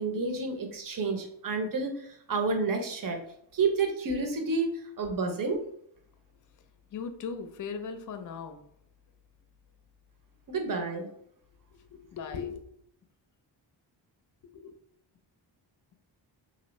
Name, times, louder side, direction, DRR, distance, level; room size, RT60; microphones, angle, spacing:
voice 1, 0.0-3.2 3.5-5.6 10.5-11.1, right 4 dB, 45° right, 4 dB, 0.8 m, -30 dB
voice 2, 6.9-8.6 11.7-12.7 14.4-14.8, left 6 dB, 45° left, 9 dB, 0.5 m, -38 dB
2.6 x 2.6 x 3.1 m, 0.70 s
cardioid pair, 65°, 46 cm